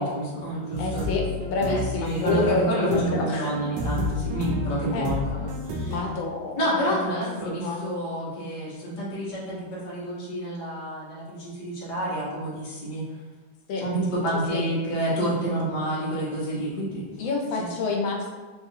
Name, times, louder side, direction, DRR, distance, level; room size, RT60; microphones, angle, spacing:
voice 1, 0.0-1.1 1.6-6.0 6.5-13.0 13.8-17.0 17.5-17.7, right 1 dB, 35° left, -7 dB, 0.8 m, -29 dB
sound 1, 0.7-6.0, left 1 dB, 75° right, 1.2 m, -30 dB
voice 2, 0.8-3.5 4.9-5.1 5.8-6.6 6.8-7.2 7.5-7.8 13.7-13.8 14.5-14.6 17.2-18.3, left 3 dB, 85° left, 1 dB, 1.4 m, -28 dB
4.0 x 2.3 x 2.7 m, 1.3 s
omnidirectional pair, 2.1 m